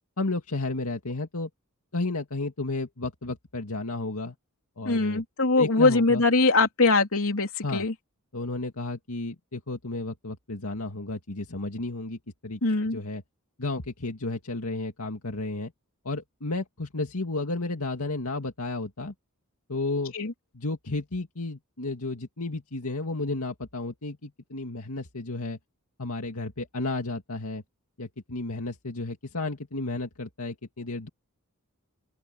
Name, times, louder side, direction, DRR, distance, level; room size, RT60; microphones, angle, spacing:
voice 1, 0.2-1.5 1.9-4.4 4.8-5.2 5.6-6.2 7.6-7.9 8.3-13.2 13.6-15.7 16.0-19.1 19.7-20.1 20.5-25.6 26.0-27.6 28.0-31.1, left 2 dB, 85° left, 2.2 m, -32 dB
voice 2, 4.9-7.9 12.6-13.0 20.1-20.3, left 3 dB, 65° left, 3.6 m, -22 dB
open air
head